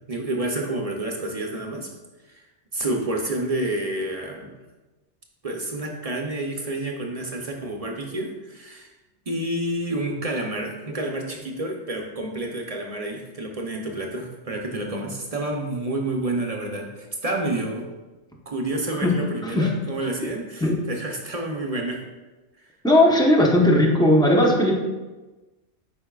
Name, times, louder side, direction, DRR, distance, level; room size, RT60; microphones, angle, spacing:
voice 1, 0.1-1.9 2.3-2.4 2.7-4.5 5.4-8.9 9.3-17.8 18.5-22.0 22.6-22.7, right 1 dB, 40° right, 1 dB, 0.7 m, -29 dB
voice 2, 22.8-24.7, left 1 dB, 5° left, -2 dB, 0.7 m, -17 dB
8.5 x 5.2 x 2.3 m, 1.2 s
omnidirectional pair, 1.2 m